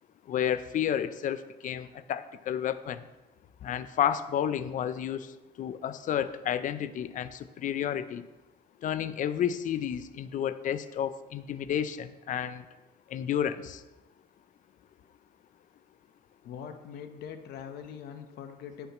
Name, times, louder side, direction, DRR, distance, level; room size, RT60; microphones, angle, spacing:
voice 1, 0.3-3.0 3.6-5.3 5.6-8.3 8.8-12.6 13.1-13.8, left 9 dB, 50° left, 13 dB, 0.5 m, -31 dB
voice 2, 16.4-18.9, left 8 dB, 75° left, 8 dB, 1.0 m, -42 dB
10.0 x 9.0 x 3.0 m, 1.1 s
cardioid pair, 110°, 17 cm